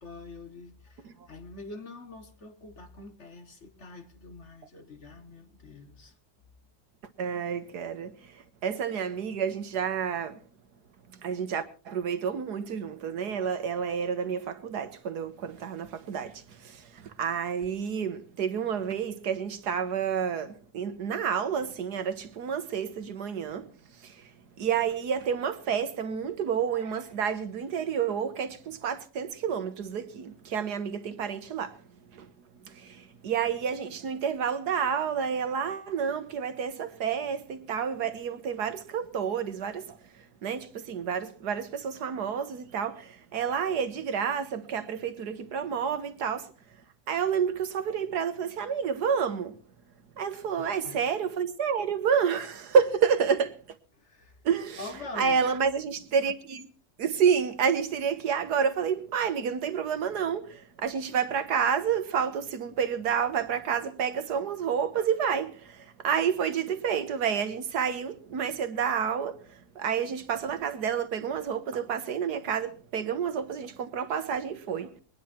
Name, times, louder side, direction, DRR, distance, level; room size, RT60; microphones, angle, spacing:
voice 1, 0.0-6.1 50.6-51.0 53.9-54.4 54.8-55.4, left 3 dB, 40° left, 1.8 m, -45 dB
voice 2, 7.2-10.4 11.1-24.3 24.6-31.8 32.1-32.3 32.7-40.0 40.4-46.5 47.1-49.6 50.2-53.6 54.4-54.9 55.1-56.7 57.0-75.0, right 7 dB, 65° right, 1.8 m, -29 dB
23.0 x 10.5 x 4.4 m
omnidirectional pair, 1.9 m